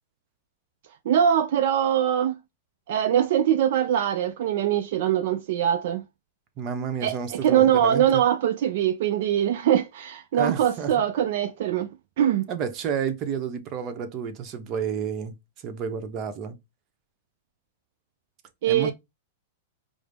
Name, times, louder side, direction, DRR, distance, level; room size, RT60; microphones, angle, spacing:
voice 1, 1.1-2.4 2.9-6.0 7.0-12.5 18.6-18.9, right 10 dB, 65° right, 0.4 m, -22 dB
voice 2, 6.6-8.2 10.3-10.9 12.5-15.4 15.6-16.6 18.7-18.9, right 7 dB, 40° right, 0.8 m, -30 dB
4.9 x 2.0 x 3.3 m
hypercardioid pair, 115°, 0 cm